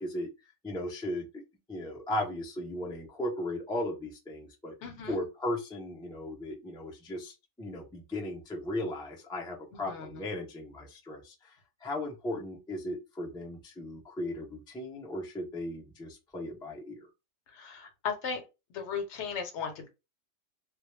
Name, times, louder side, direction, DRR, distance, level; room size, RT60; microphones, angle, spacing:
voice 1, 0.0-1.4 1.7-4.8 5.1-17.0, left 1 dB, 5° left, -2 dB, 0.3 m, -37 dB
voice 2, 4.8-5.2 9.7-10.2 17.5-18.4 18.7-19.9, left 6 dB, 70° left, 5 dB, 0.9 m, -36 dB
2.2 x 2.2 x 3.1 m, 0.26 s
omnidirectional pair, 1.3 m